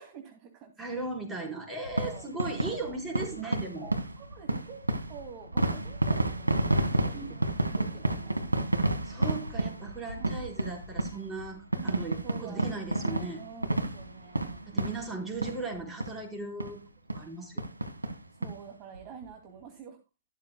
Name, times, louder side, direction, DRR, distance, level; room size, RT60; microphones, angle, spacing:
voice 1, 0.0-0.7 1.7-2.3 4.2-4.8 5.1-7.4 7.8-8.7 10.2-10.5 11.7-11.9 12.2-14.6 18.3-20.0, right 6 dB, 30° right, 3 dB, 2.5 m, -48 dB
voice 2, 0.8-4.0 7.1-7.4 9.0-13.4 14.7-16.8 17.1-17.7, right 3 dB, 10° right, 0 dB, 4.7 m, -37 dB
sound 1, 1.9-15.7 16.0-16.2 16.6-16.7 17.1-17.3 17.6-18.5 18.9-19.0 19.2-19.3, right 1 dB, 90° right, 1.8 m, -30 dB
14.0 x 12.5 x 2.3 m, 0.26 s
figure-of-eight pair, 115°, 0 cm